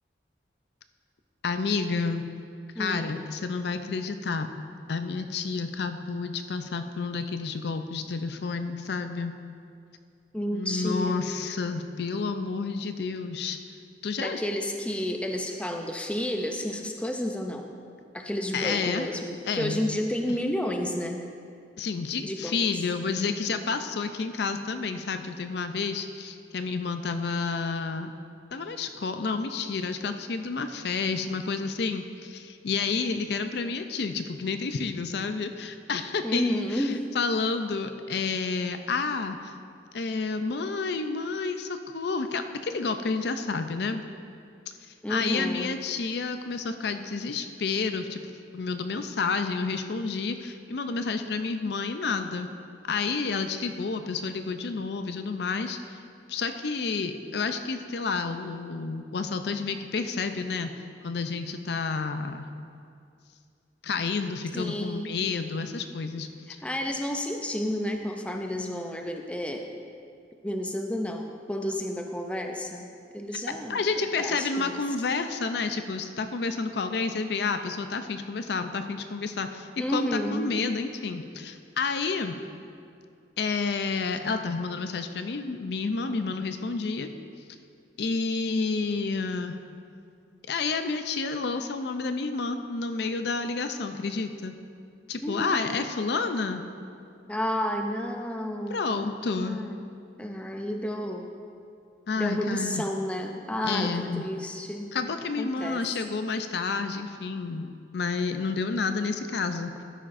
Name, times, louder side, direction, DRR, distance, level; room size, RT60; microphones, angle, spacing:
voice 1, 1.4-2.2 2.8-4.5 4.9-9.3 10.5-13.6 14.0-14.4 18.5-19.1 19.5-19.8 21.8-28.1 28.5-39.5 39.9-44.0 44.7-44.8 45.1-48.2 48.5-52.5 52.9-56.0 56.3-60.7 61.0-62.4 63.8-66.3 73.5-82.4 83.4-87.1 88.0-89.6 90.5-94.6 95.1-96.6 98.7-99.6 102.1-102.8 103.6-104.2 104.9-109.8, left 4 dB, 60° left, 8 dB, 0.5 m, -30 dB
voice 2, 2.8-3.1 10.3-11.3 14.2-17.7 18.1-21.3 22.2-22.6 36.2-37.0 45.0-45.8 64.5-65.2 66.6-69.7 70.4-73.8 74.2-74.8 79.8-80.5 95.2-95.6 97.3-99.1 99.3-99.8 100.2-101.3 102.2-104.9 105.4-105.8, left 1 dB, 5° left, 3 dB, 0.4 m, -31 dB
12.5 x 10.0 x 2.6 m, 2.4 s
head